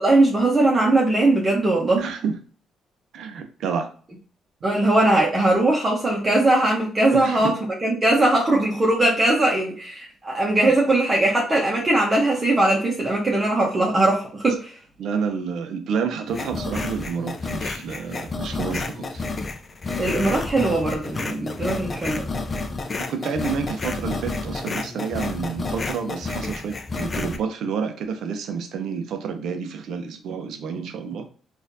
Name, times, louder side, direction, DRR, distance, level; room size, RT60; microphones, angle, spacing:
voice 1, 0.0-2.0 4.6-7.5 7.8-14.8 20.0-22.3, right 2 dB, 25° right, -3 dB, 0.9 m, -20 dB
voice 2, 2.0-2.4 3.1-3.9 7.1-7.5 15.0-19.2 21.3-21.4 23.1-31.3, right 6 dB, 75° right, 6 dB, 0.6 m, -29 dB
sound 1, 16.3-27.4, left 3 dB, 30° left, 0.5 m, -30 dB
4.2 x 2.5 x 2.6 m, 0.42 s
cardioid pair, 100°, 0 cm